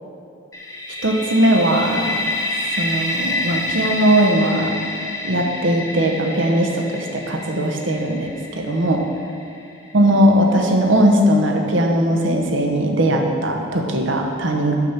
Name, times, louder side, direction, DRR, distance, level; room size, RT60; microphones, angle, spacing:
sound 1, 0.5-10.2, left 2 dB, 15° left, 0.7 m, -28 dB
voice 1, 1.0-2.2 2.8-4.8 5.2-9.1 9.9-14.7, right 1 dB, 70° right, 2 dB, 0.9 m, -19 dB
6.7 x 6.1 x 5.8 m, 2.5 s
head